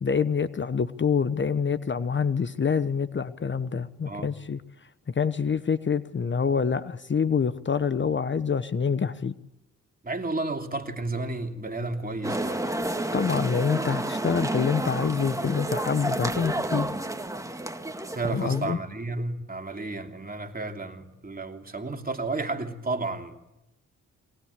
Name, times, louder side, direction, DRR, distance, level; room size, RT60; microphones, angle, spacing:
voice 1, 0.0-4.6 5.1-9.3 13.1-16.9 18.3-18.8, left 6 dB, 35° left, 1.0 m, -26 dB
voice 2, 10.0-12.7 18.1-23.3, right 2 dB, 30° right, 3.1 m, -32 dB
sound 1, 12.2-18.7, right 1 dB, 10° right, 2.2 m, -30 dB
23.5 x 18.5 x 8.2 m
supercardioid pair, 50°, 31 cm